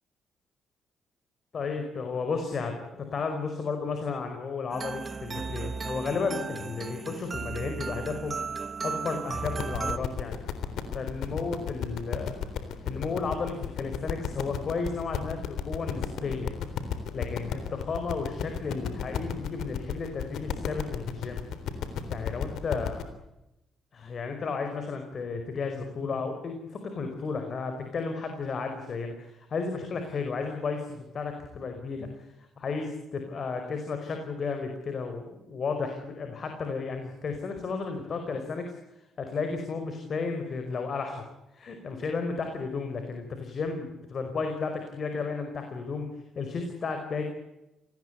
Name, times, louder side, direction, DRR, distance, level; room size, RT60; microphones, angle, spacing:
voice 1, 1.5-8.4 8.8-10.4 10.9-12.4 12.8-16.5 17.1-21.4 22.1-23.1 23.9-41.2 41.5-47.2, left 4 dB, 50° left, 5 dB, 5.0 m, -33 dB
sound 1, 4.7-10.0, right 5 dB, 35° right, 1.1 m, -35 dB
sound 2, 9.3-23.0, left 8 dB, 80° left, 3.7 m, -34 dB
27.5 x 19.5 x 8.1 m, 0.94 s
cardioid pair, 90°, 0 cm